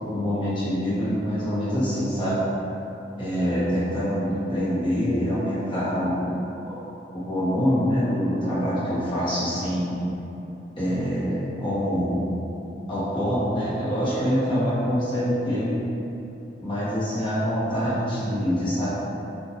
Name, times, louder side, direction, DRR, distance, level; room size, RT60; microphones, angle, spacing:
voice 1, 0.0-2.4 3.2-6.3 6.7-6.8 7.1-10.0 10.8-12.2 12.9-15.9 16.6-18.9, equal, 30° left, -11 dB, 1.4 m, -25 dB
5.6 x 2.8 x 3.0 m, 2.9 s
head